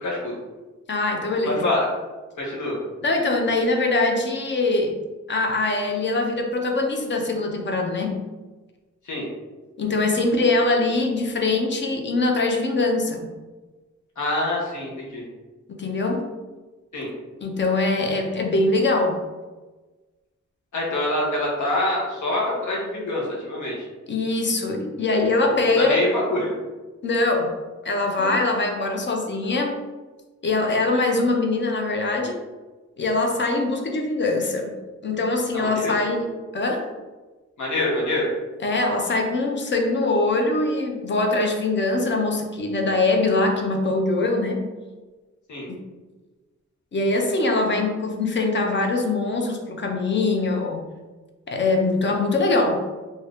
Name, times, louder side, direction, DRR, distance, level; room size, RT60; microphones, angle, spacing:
voice 1, 0.0-0.4 1.4-1.8 2.4-2.8 9.0-9.3 14.2-15.3 16.9-17.1 20.7-23.9 25.8-26.6 28.2-28.4 35.5-36.0 37.6-38.3 45.5-45.7, left 1 dB, 90° left, -4 dB, 1.0 m, -25 dB
voice 2, 0.9-1.6 3.0-5.0 5.3-8.3 9.8-13.3 15.7-16.3 17.4-19.2 24.1-26.1 27.0-27.5 27.8-29.8 30.4-32.4 33.0-34.7 35.0-36.9 38.6-44.7 45.7-45.8 46.9-50.8 51.5-52.8, left 2 dB, 40° left, 2 dB, 0.4 m, -23 dB
2.6 x 2.5 x 3.3 m, 1.2 s
wide cardioid pair, 170°, 29 cm